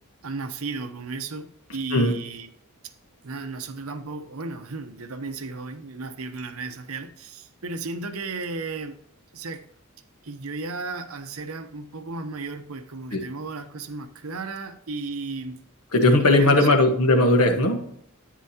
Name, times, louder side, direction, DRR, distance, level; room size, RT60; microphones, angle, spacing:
voice 1, 0.2-2.5 2.8-2.9 3.2-9.0 9.3-9.7 10.2-15.6 16.2-16.8, right 3 dB, 75° right, 9 dB, 0.9 m, -34 dB
voice 2, 15.9-17.9, left 2 dB, 85° left, 5 dB, 1.4 m, -18 dB
10.0 x 9.4 x 2.8 m, 0.70 s
head